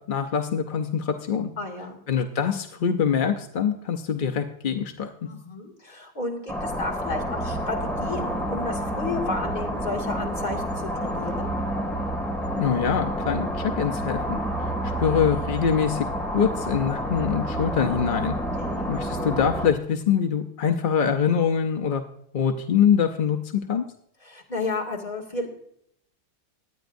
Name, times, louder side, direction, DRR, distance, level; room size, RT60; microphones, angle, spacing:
voice 1, 0.0-1.5 2.1-5.1 12.6-16.1 16.3-18.3 18.9-22.0 22.3-23.8, left 7 dB, 50° left, 6 dB, 0.6 m, -24 dB
voice 2, 1.6-2.0 5.3-11.5 18.6-18.9 24.2-25.6, left 3 dB, 30° left, -1 dB, 2.3 m, -32 dB
sound 1, 6.5-19.7, equal, ahead, 2.0 m, -29 dB
23.5 x 9.3 x 2.6 m, 0.70 s
omnidirectional pair, 1.7 m